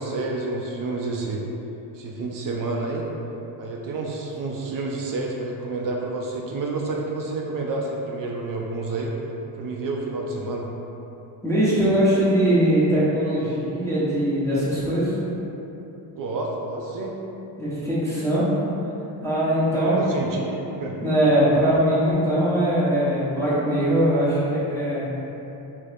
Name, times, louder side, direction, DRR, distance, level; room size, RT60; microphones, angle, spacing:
voice 1, 0.0-1.4 1.9-3.1 3.6-9.2 9.6-10.7 16.2-17.2 20.0-21.0, right 3 dB, 50° right, -1 dB, 0.4 m, -29 dB
voice 2, 11.4-15.1 17.6-18.4 19.2-20.0 21.0-25.1, right 1 dB, 5° left, -11 dB, 0.9 m, -21 dB
2.8 x 2.4 x 3.3 m, 3.0 s
cardioid pair, 95°, 44 cm